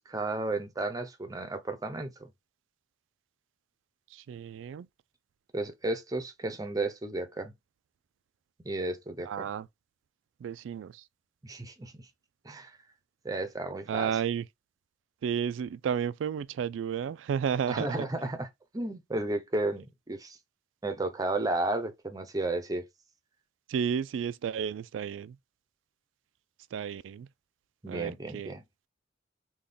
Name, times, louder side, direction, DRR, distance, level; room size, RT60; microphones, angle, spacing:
voice 1, 0.0-2.3 5.5-7.5 8.6-9.5 11.4-12.0 12.4-12.8 13.2-14.1 17.7-18.5 18.7-20.4 20.8-22.8 27.8-28.6, right 2 dB, 20° right, 0.6 m, -33 dB
voice 2, 4.1-4.9 9.2-9.7 10.4-11.0 13.9-14.4 15.2-18.1 23.7-25.4 26.7-27.3 27.9-28.5, right 7 dB, 90° right, 0.3 m, -32 dB
3.5 x 2.3 x 3.7 m
head